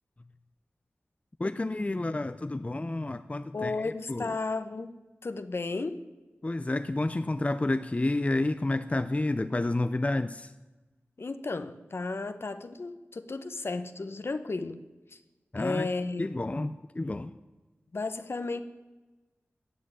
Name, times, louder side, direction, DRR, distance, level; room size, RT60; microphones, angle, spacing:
voice 1, 1.4-4.4 6.4-10.5 15.5-15.9 16.2-17.3, left 2 dB, 30° left, 12 dB, 0.5 m, -30 dB
voice 2, 3.5-6.0 11.2-14.8 15.1-15.2 15.5-16.2 17.9-18.6, left 3 dB, 60° left, 11 dB, 1.0 m, -34 dB
14.0 x 7.9 x 9.8 m, 1.2 s
wide cardioid pair, 50°, 5 cm